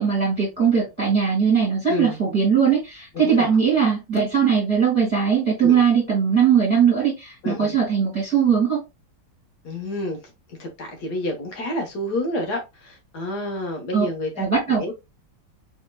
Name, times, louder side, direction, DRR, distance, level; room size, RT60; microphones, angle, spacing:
voice 1, 0.0-8.8 13.9-14.0 14.4-14.9, right 7 dB, 5° right, 2.0 m, -20 dB
voice 2, 3.2-3.6 5.6-5.8 7.4-7.8 9.6-10.2 10.5-14.9, left 1 dB, 60° left, 1.7 m, -29 dB
4.6 x 3.6 x 2.3 m
omnidirectional pair, 2.0 m